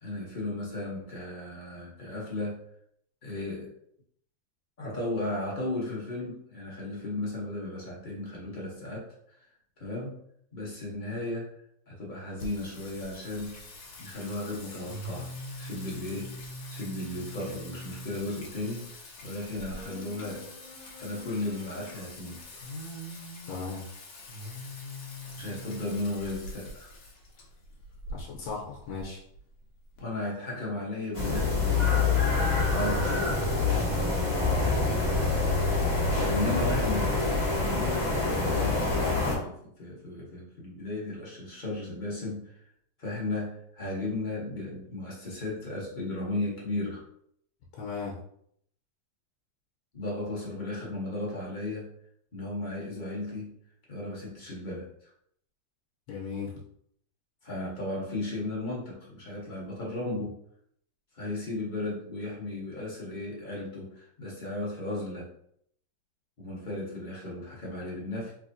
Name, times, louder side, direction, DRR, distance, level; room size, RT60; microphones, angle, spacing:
voice 1, 0.0-2.6 3.2-3.7 4.8-9.1 9.8-10.2 10.5-11.5 11.9-13.5 14.0-15.3 15.6-18.9 19.2-20.5 21.0-22.6 25.4-26.9 30.0-32.2 32.5-33.3 36.2-37.1 37.5-42.6 43.0-47.0 49.9-51.9 52.3-53.5 53.9-54.9 57.4-60.3 61.1-65.3 66.4-68.3, left 2 dB, 40° left, -5 dB, 0.7 m, -35 dB
Singing, 12.4-30.0, left 1 dB, 60° left, 1.0 m, -43 dB
voice 2, 23.5-23.8 28.1-29.2 34.3-34.9 47.7-48.2 56.1-56.6, left 4 dB, 80° left, -3 dB, 1.4 m, -36 dB
sound 1, 31.1-39.3, left 3 dB, 20° left, 1.1 m, -26 dB
3.4 x 3.4 x 2.6 m, 0.69 s
omnidirectional pair, 2.1 m